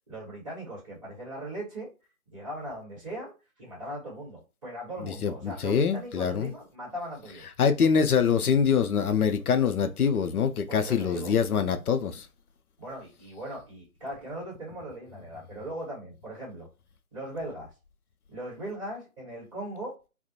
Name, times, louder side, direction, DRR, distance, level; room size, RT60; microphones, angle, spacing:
voice 1, 0.1-1.9 2.3-7.4 10.7-11.3 12.8-16.7 17.1-17.7 18.3-20.0, right 1 dB, 20° right, 1.2 m, -39 dB
voice 2, 5.0-6.5 7.6-12.3, left 6 dB, 80° left, 0.5 m, -24 dB
2.4 x 2.1 x 2.7 m
figure-of-eight pair, 155°, 44 cm